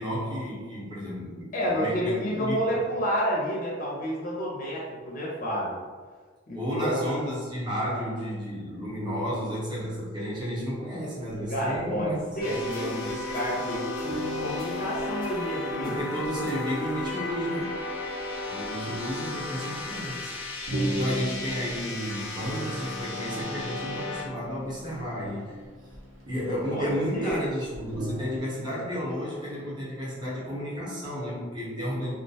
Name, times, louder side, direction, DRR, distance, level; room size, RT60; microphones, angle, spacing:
voice 1, 0.0-2.6 6.5-12.2 12.4-12.5 15.8-17.8 18.5-20.3 20.7-25.6 26.2-32.1, equal, 20° right, -6 dB, 0.7 m, -32 dB
voice 2, 1.5-5.8 6.5-7.0 11.5-14.1 14.4-15.9 26.7-27.4, equal, 45° left, -5 dB, 0.5 m, -30 dB
sound 1, 11.2-13.4 13.7-13.8 14.1-27.3 27.6-28.4, equal, 70° right, 0.7 m, -39 dB
sound 2, 12.4-24.2, left 2 dB, 90° left, 0.6 m, -34 dB
2.3 x 2.1 x 2.7 m, 1.5 s
head